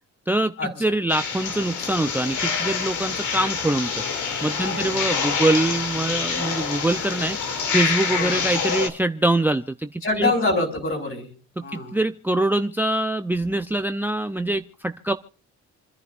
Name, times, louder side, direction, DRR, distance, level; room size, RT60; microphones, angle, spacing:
voice 1, 0.3-3.9 4.4-7.4 7.7-10.3 11.6-15.1, right 1 dB, 5° right, 9 dB, 0.6 m, -24 dB
sound 1, 1.1-8.9, left 5 dB, 75° left, 2.8 m, -26 dB
voice 2, 4.6-5.3 8.1-8.4 10.0-11.3 11.6-12.0, left 2 dB, 45° left, 2 dB, 5.6 m, -26 dB
28.5 x 10.5 x 2.6 m, 0.40 s
cardioid pair, 90°, 30 cm